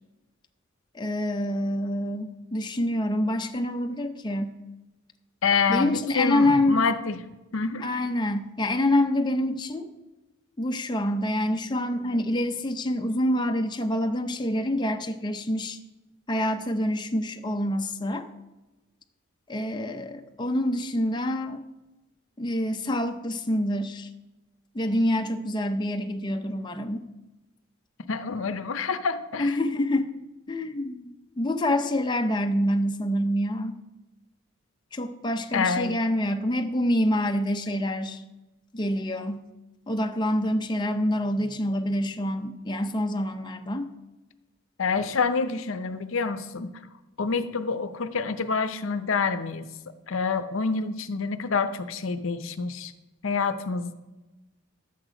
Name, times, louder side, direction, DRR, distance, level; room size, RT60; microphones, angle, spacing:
voice 1, 0.9-4.6 5.7-6.8 7.8-9.9 10.6-15.8 16.3-18.3 19.5-21.6 22.4-24.1 24.7-27.0 29.4-30.2 30.5-33.8 34.9-38.2 38.7-39.5 39.9-43.9, left 1 dB, 20° left, 5 dB, 0.6 m, -26 dB
voice 2, 5.4-7.2 7.5-7.9 28.1-29.5 35.5-36.0 44.8-46.7 47.2-49.7 50.1-52.9 53.2-53.9, left 5 dB, 70° left, 10 dB, 0.7 m, -27 dB
11.5 x 8.0 x 5.0 m, 1.1 s
head